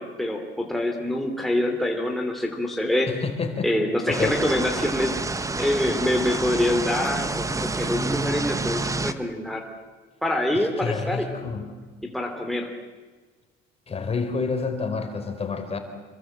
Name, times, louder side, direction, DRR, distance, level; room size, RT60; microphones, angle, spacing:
voice 1, 0.0-3.1 3.6-5.2 5.6-9.6 10.2-11.3 12.0-12.7, left 1 dB, ahead, 2 dB, 3.2 m, -25 dB
voice 2, 3.1-3.7 4.1-4.4 10.8-11.7 13.9-15.8, left 4 dB, 30° left, 7 dB, 4.2 m, -28 dB
sound 1, 4.1-9.1, right 3 dB, 15° right, 1.3 m, -28 dB
27.5 x 23.0 x 8.0 m, 1.4 s
supercardioid pair, 100°, 20 cm